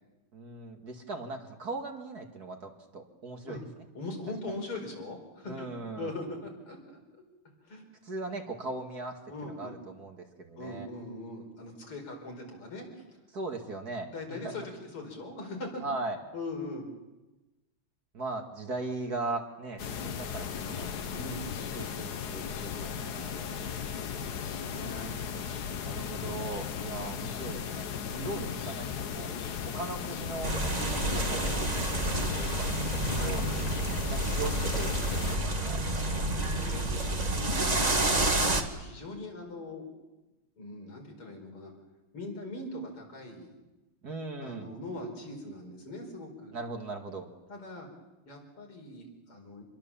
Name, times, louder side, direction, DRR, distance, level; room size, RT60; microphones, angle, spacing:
voice 1, 0.3-3.6 5.4-6.1 8.0-10.9 13.3-14.5 15.8-16.2 18.1-20.9 21.7-23.3 24.8-25.4 25.8-27.9 28.2-29.3 29.7-30.5 31.1-33.5 34.1-35.8 44.0-44.7 46.5-47.3, right 3 dB, 45° right, 3 dB, 2.5 m, -39 dB
voice 2, 3.9-5.7 5.9-6.8 7.6-7.9 9.3-9.8 10.6-13.2 14.0-14.6 14.9-15.8 16.3-16.9 21.1-21.5 23.2-25.1 28.1-28.4 30.7-31.0 33.1-33.7 36.0-38.1 38.7-39.9 40.6-41.7 42.1-43.6 44.4-46.5 47.5-47.9 48.3-49.6, left 2 dB, 85° left, 1 dB, 5.8 m, -41 dB
sound 1, 19.8-35.4, left 7 dB, 55° left, 1.5 m, -36 dB
sound 2, 30.4-38.6, right 2 dB, 20° right, 1.4 m, -29 dB
26.5 x 22.0 x 7.3 m, 1.1 s
omnidirectional pair, 2.4 m